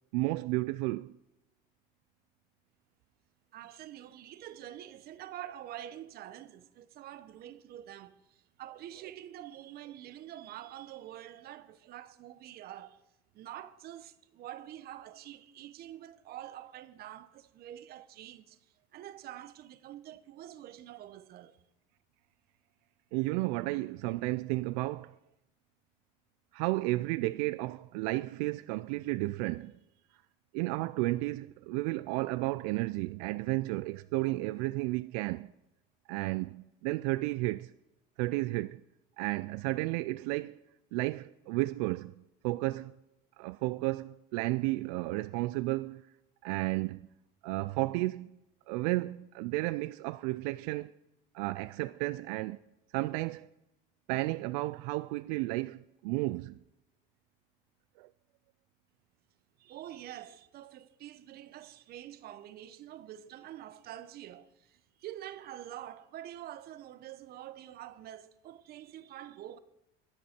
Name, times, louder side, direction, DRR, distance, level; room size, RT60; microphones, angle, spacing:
voice 1, 0.1-1.2 23.1-25.1 26.5-29.7 30.5-35.5 36.1-37.7 38.2-38.8 39.2-40.6 40.9-42.1 42.4-42.9 43.4-46.0 46.4-47.1 47.4-48.4 48.7-50.9 51.3-52.6 52.9-53.5 54.1-56.6 58.0-58.1, right 20 dB, 85° right, 0.4 m, -32 dB
voice 2, 3.5-13.0 13.3-21.6 59.6-69.6, right 12 dB, 50° right, 0.9 m, -46 dB
23.0 x 8.4 x 4.4 m
cardioid pair, 125°, 20 cm